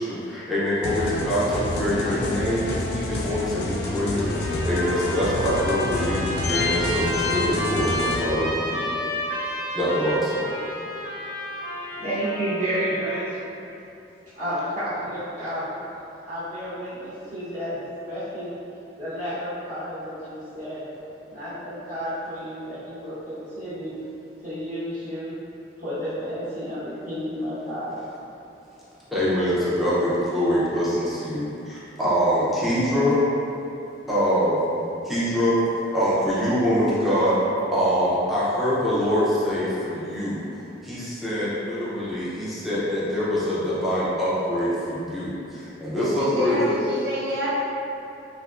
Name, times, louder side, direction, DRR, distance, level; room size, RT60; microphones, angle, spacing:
voice 1, 0.0-4.3 4.6-8.8 9.7-10.5 29.1-33.2 34.1-34.6 35.0-35.5 35.9-37.4 37.7-40.4 40.8-46.7, equal, ahead, -10 dB, 0.5 m, -24 dB
sound 1, 0.8-8.2, left 2 dB, 60° left, 0.3 m, -28 dB
Trumpet, 4.2-13.3, left 1 dB, 15° right, 0.9 m, -32 dB
voice 2, 11.9-13.4 14.3-15.6 16.3-18.5 19.0-20.8 21.2-23.9 24.4-25.3 25.8-28.0, equal, 45° right, -14 dB, 0.9 m, -31 dB
voice 3, 45.9-47.5, equal, 65° right, -9 dB, 0.6 m, -28 dB
3.3 x 2.7 x 2.4 m, 2.8 s
head